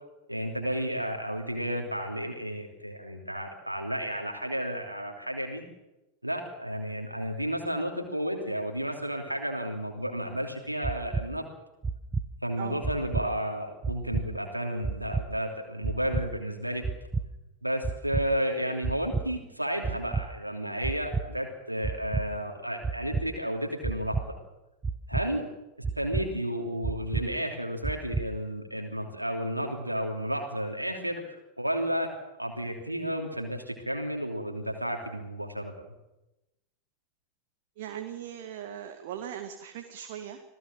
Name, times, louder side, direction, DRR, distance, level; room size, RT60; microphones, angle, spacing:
voice 1, 0.3-5.6 6.2-11.4 12.4-16.8 17.6-24.3 25.1-25.4 26.0-32.1 32.4-35.9, equal, 85° right, 2 dB, 2.9 m, -32 dB
sound 1, 10.8-11.2 11.8-12.2 12.8-13.2 13.8-14.2 14.8-15.2 15.8-16.2 16.8-17.2 17.8-18.2 18.8-19.2 19.8-20.2 20.8-21.2 21.8-22.2 22.8-23.2 23.8-24.2 24.8-25.2 25.8-26.2 26.8-27.2 27.8-28.2, right 4 dB, 15° right, 1.3 m, -29 dB
voice 2, 37.8-40.4, right 10 dB, 50° right, 6 dB, 2.1 m, -39 dB
26.5 x 17.5 x 7.6 m, 0.98 s
figure-of-eight pair, 90°, 0 cm